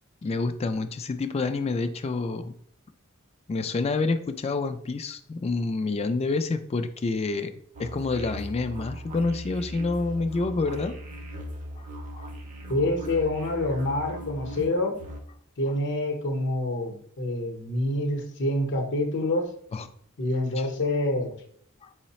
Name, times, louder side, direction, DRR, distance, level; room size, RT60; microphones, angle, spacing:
voice 1, 0.2-2.6 3.5-7.5 7.8-11.0 11.8-11.9 12.2-12.3 19.7-19.9 20.6-20.7 21.8-21.9, left 3 dB, 30° left, 9 dB, 0.3 m, -28 dB
sound 1, 7.7-15.2, equal, 35° right, 0.6 m, -39 dB
voice 2, 12.7-15.0 15.6-19.5 20.2-21.3, left 1 dB, 55° left, 3 dB, 0.8 m, -27 dB
4.6 x 2.1 x 4.1 m, 0.63 s
head